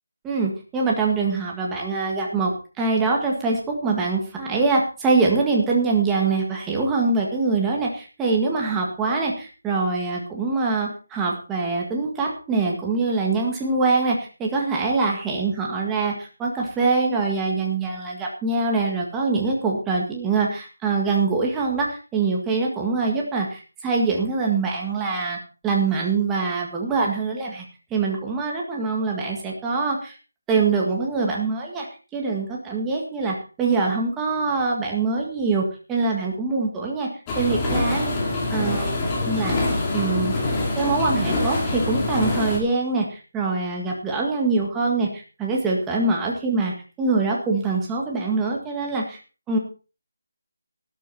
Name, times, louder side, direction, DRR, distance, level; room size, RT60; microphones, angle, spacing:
voice 1, 0.2-2.5 2.8-27.6 27.9-30.2 30.5-31.9 32.1-37.1 37.4-38.1 38.5-39.6 39.9-40.3 40.8-49.2 49.5-49.6, right 3 dB, 5° right, -2 dB, 1.8 m, -24 dB
sound 1, 37.3-42.6, left 2 dB, 15° left, 2.5 m, -25 dB
12.5 x 12.5 x 4.2 m, 0.35 s
figure-of-eight pair, 175°, 0 cm